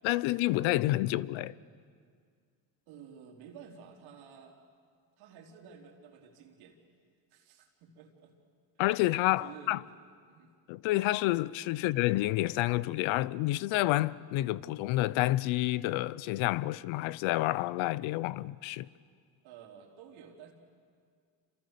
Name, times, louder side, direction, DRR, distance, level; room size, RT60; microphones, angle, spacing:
voice 1, 0.0-1.5 8.8-9.8 10.7-18.9, left 17 dB, 75° left, 0.8 m, -29 dB
voice 2, 2.9-4.6 5.2-6.8 7.3-8.3 9.4-9.9 10.3-10.5 11.7-11.9 19.4-20.5, right 7 dB, 80° right, 3.8 m, -52 dB
28.5 x 27.0 x 6.7 m
supercardioid pair, 80°, 48 cm